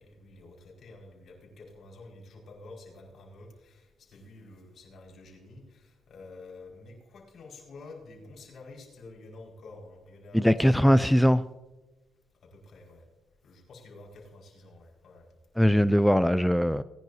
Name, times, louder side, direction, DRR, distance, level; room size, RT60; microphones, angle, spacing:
voice 1, 0.0-11.3 12.4-13.0 13.4-15.3, left 2 dB, 60° left, 5.0 m, -49 dB
voice 2, 10.3-11.4 15.6-16.8, equal, ahead, 0.3 m, -21 dB
20.0 x 10.5 x 2.7 m
cardioid pair, 90°, 0 cm